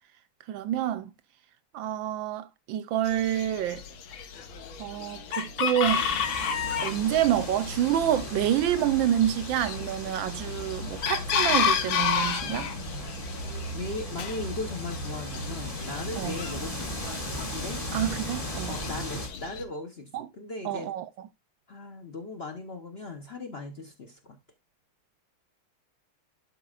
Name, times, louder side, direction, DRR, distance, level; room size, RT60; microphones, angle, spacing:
voice 1, 0.5-1.1 1.7-3.8 4.8-6.1 6.8-12.7 16.2-16.3 17.9-18.7 20.1-20.3 20.6-21.0, right 11 dB, 75° right, 1.2 m, -27 dB
Chicken rooster, 3.0-19.6, left 6 dB, 70° left, 1.8 m, -32 dB
sound 1, 5.8-19.3, equal, 15° left, 1.8 m, -38 dB
voice 2, 12.4-13.2 13.7-17.8 18.7-20.9 21.7-24.4, left 3 dB, 50° left, 0.7 m, -38 dB
11.5 x 5.5 x 2.4 m
omnidirectional pair, 2.3 m